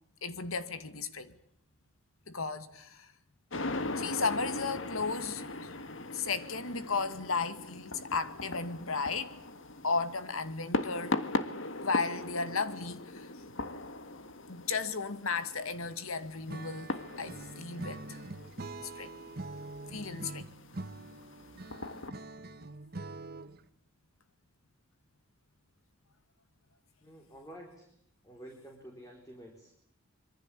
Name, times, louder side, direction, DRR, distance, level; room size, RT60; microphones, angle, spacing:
voice 1, 0.2-1.3 2.3-3.1 4.0-5.4 6.1-9.3 9.8-11.2 11.8-13.3 14.5-18.2 19.0-19.1 19.9-20.5, left 4 dB, 85° left, 2.2 m, -34 dB
sound 1, 3.5-22.1, left 2 dB, 65° left, 1.7 m, -40 dB
Acoustic guitar / Strum, 16.5-23.7, right 2 dB, 45° right, 1.2 m, -44 dB
voice 2, 27.0-28.0 28.2-29.7, right 1 dB, 15° left, 4.2 m, -50 dB
25.5 x 23.5 x 8.5 m
head